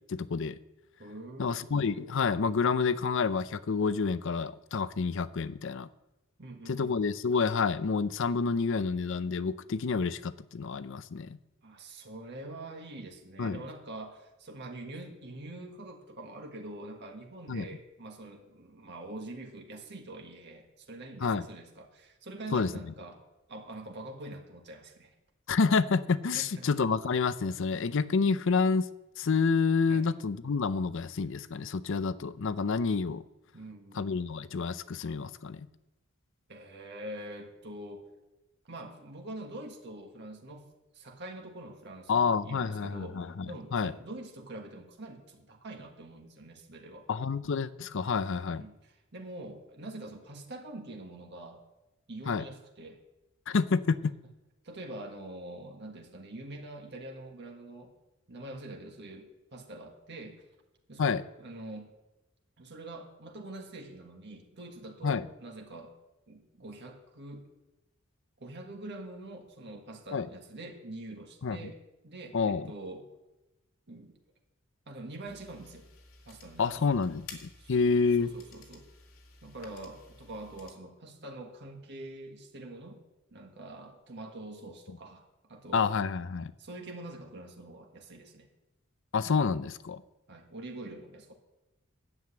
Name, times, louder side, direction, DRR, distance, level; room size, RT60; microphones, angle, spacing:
voice 1, 0.1-0.6 1.4-5.9 6.7-11.4 13.4-13.6 17.5-17.7 21.2-21.4 22.5-22.7 25.5-28.9 29.2-33.2 34.0-35.7 42.1-43.5 43.7-43.9 47.1-48.6 52.3-52.4 53.5-54.1 61.0-61.2 65.0-65.3 70.1-70.3 71.4-71.6 72.3-72.7 76.6-78.3 85.7-86.5 89.1-90.0, left 5 dB, 65° left, 15 dB, 0.5 m, -28 dB
voice 2, 1.0-1.7 6.4-7.0 11.6-23.2 23.5-25.1 26.3-26.7 29.9-30.1 33.5-34.0 36.5-38.0 38.6-40.6 40.9-47.0 48.5-51.6 52.1-53.0 54.6-57.9 58.3-60.4 60.9-61.9 62.6-65.9 66.3-67.5 68.4-71.8 72.0-73.1 73.9-74.2 74.9-75.8 76.2-76.9 77.6-78.8 79.4-83.0 83.3-85.2 85.5-85.9 86.6-88.5 90.3-91.3, right 2 dB, 55° right, 2 dB, 1.7 m, -45 dB
sound 1, 75.3-80.7, left 4 dB, 85° left, 2.2 m, -53 dB
11.0 x 7.8 x 8.6 m, 0.99 s
head